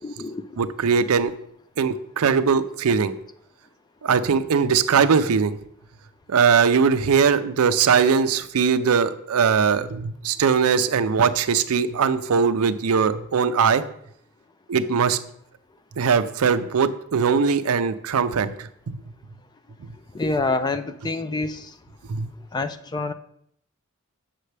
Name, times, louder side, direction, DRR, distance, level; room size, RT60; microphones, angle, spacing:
voice 1, 0.0-0.4 20.1-21.7 22.5-23.1, left 3 dB, 20° left, 10 dB, 0.3 m, -26 dB
voice 2, 0.6-1.3 1.8-3.1 4.0-5.6 6.3-13.8 14.7-15.2 16.0-19.0 22.1-22.3, right 6 dB, 75° right, 12 dB, 0.5 m, -20 dB
7.6 x 6.6 x 3.3 m, 0.70 s
head